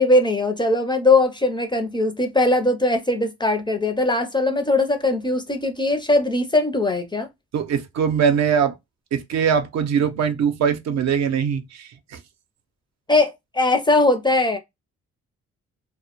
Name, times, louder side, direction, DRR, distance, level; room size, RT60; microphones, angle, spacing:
voice 1, 0.0-7.3 13.1-14.6, left 2 dB, 15° left, 0.4 m, -20 dB
voice 2, 7.5-8.7 9.1-12.2, right 7 dB, 60° right, 0.6 m, -22 dB
2.1 x 2.1 x 2.8 m
cardioid pair, 90°, 30 cm